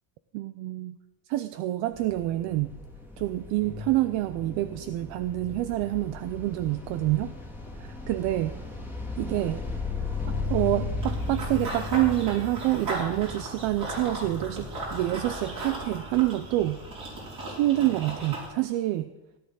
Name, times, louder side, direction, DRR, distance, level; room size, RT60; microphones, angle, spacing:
voice 1, 0.3-1.0 1.3-2.7 3.2-7.3 7.8-8.6 9.2-9.6 10.3-16.8 17.5-19.1, right 16 dB, 75° right, 12 dB, 0.7 m, -27 dB
sound 1, 1.9-17.3, left 3 dB, 5° right, 1.9 m, -36 dB
Run / Bird vocalization bird call bird song, 11.0-18.5, right 1 dB, 50° right, 5.6 m, -37 dB
17.0 x 10.0 x 3.9 m, 1.1 s
cardioid pair, 140°, 47 cm